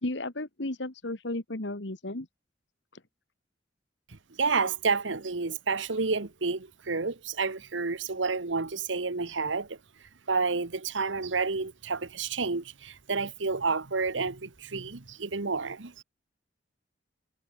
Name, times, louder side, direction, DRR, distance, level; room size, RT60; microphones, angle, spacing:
voice 1, 0.0-2.3, left 2 dB, 70° left, 1.9 m, -34 dB
voice 2, 4.4-9.8 10.3-16.0, right 4 dB, 75° right, 1.2 m, -30 dB
head